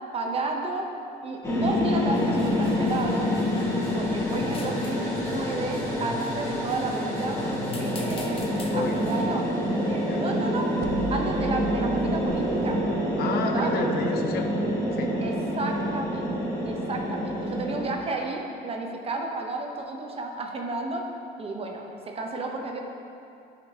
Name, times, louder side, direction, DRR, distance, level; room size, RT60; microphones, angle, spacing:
voice 1, 0.1-0.9 1.2-3.3 3.9-7.4 7.8-8.5 8.7-9.5 9.9-10.7 11.1-12.8 13.4-13.7 15.2-16.4 16.6-21.0 21.4-21.9 22.1-22.8, right 3 dB, 35° right, 1 dB, 0.8 m, -32 dB
sound 1, 1.4-17.9, equal, 15° left, 1.6 m, -27 dB
sound 2, 2.1-9.2, left 3 dB, 35° left, 0.7 m, -45 dB
voice 2, 7.4-9.0 10.0-10.2 13.2-14.5 14.9-15.1, left 4 dB, 70° left, 4 dB, 0.7 m, -32 dB
sound 3, 10.8-15.6, right 6 dB, 65° right, 0.5 m, -36 dB
10.0 x 5.2 x 2.8 m, 2.6 s
cardioid pair, 110°, 17 cm